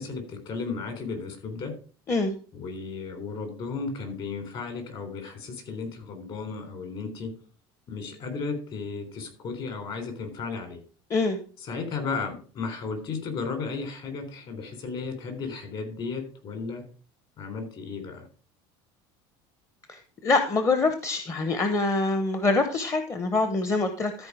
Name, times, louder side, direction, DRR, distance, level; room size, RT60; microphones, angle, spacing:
voice 1, 0.0-1.7 2.5-7.3 7.9-10.8 11.6-16.8 17.4-18.3, left 4 dB, 45° left, 5 dB, 3.7 m, -34 dB
voice 2, 11.1-11.4 19.9-24.3, left 3 dB, 25° left, 8 dB, 0.9 m, -25 dB
13.5 x 4.6 x 4.9 m, 0.39 s
supercardioid pair, 125°, 12 cm